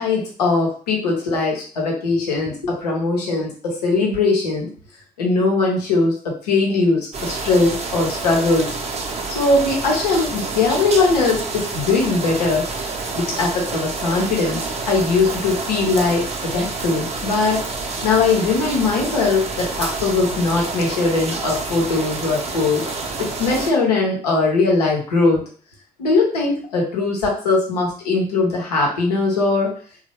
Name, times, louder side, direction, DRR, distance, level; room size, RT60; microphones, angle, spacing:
voice 1, 0.0-4.7 5.2-8.7 9.3-12.7 13.1-17.6 18.0-22.9 23.2-25.4 26.0-29.7, left 3 dB, 85° left, -1 dB, 0.9 m, -20 dB
sound 1, 7.1-23.7, right 3 dB, 30° right, 0.7 m, -28 dB
3.1 x 2.2 x 3.0 m, 0.42 s
hypercardioid pair, 55°, 20 cm